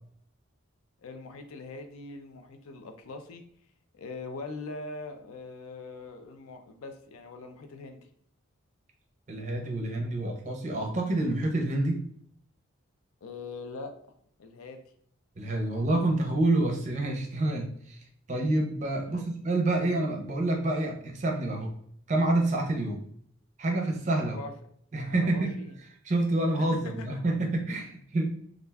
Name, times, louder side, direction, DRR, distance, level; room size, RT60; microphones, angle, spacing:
voice 1, 1.0-3.4 3.9-8.0 13.2-14.0 14.4-14.8 19.1-19.3 24.4-24.5 25.3-25.7 26.6-27.1, left 3 dB, 85° left, 6 dB, 0.4 m, -42 dB
voice 2, 9.3-12.1 15.4-18.0 18.3-21.7 22.1-23.0 23.6-24.4 24.9-25.5 26.0-28.3, right 2 dB, 35° right, 1 dB, 0.5 m, -28 dB
2.4 x 2.2 x 3.3 m, 0.65 s
head